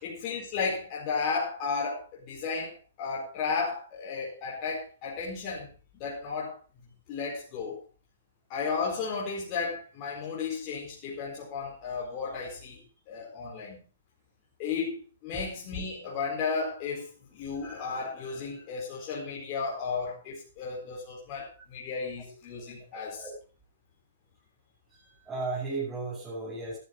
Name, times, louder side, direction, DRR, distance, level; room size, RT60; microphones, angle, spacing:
voice 1, 0.0-7.8 8.5-13.8 14.6-23.3, left 5 dB, 40° left, -3 dB, 4.4 m, -34 dB
voice 2, 24.9-26.8, right 3 dB, 15° right, -6 dB, 6.2 m, -35 dB
12.5 x 12.0 x 4.6 m, 0.35 s
hypercardioid pair, 125°, 0 cm